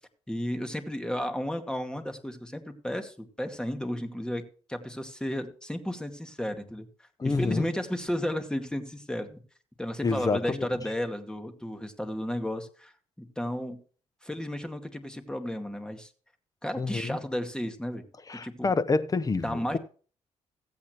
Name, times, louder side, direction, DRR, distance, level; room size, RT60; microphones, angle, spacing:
voice 1, 0.3-4.4 4.7-6.9 7.2-9.4 9.8-12.9 13.2-13.8 14.2-16.1 16.6-18.1 18.4-18.7 19.4-19.8, equal, 5° left, 2.1 m, -33 dB
voice 2, 7.2-7.7 10.0-10.7 16.8-17.2 18.3-19.8, left 3 dB, 30° left, 1.0 m, -28 dB
15.5 x 8.6 x 3.1 m
cardioid pair, 75°, 12 cm